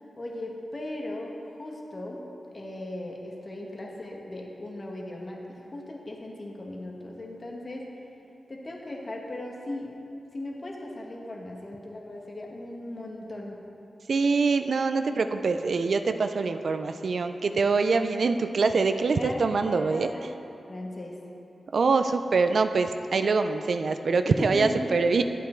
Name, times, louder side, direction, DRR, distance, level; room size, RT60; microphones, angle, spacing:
voice 1, 0.2-2.2 2.5-7.9 8.5-9.9 10.3-13.6 19.1-20.2 20.7-21.1 24.2-24.9, left 1 dB, 45° left, -1 dB, 1.5 m, -37 dB
voice 2, 14.1-20.1 21.7-25.2, right 4 dB, 75° right, 8 dB, 0.4 m, -24 dB
10.5 x 8.3 x 4.4 m, 2.8 s
cardioid pair, 70°, 0 cm